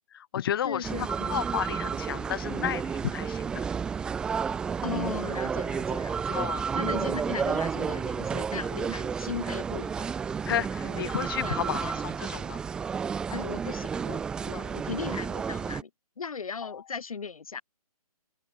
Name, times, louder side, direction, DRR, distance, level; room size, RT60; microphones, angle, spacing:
voice 1, 0.1-3.6 6.3-6.7 10.4-12.6 16.6-16.8, left 10 dB, 35° left, 0.9 m, -32 dB
voice 2, 0.6-1.4 4.8-6.5 6.7-10.1 10.8-11.1 11.4-12.0 13.3-15.9 16.2-17.6, left 5 dB, 65° left, 4.1 m, -37 dB
sound 1, 0.8-15.8, right 6 dB, 5° right, 0.5 m, -31 dB
open air
figure-of-eight pair, 145°, 19 cm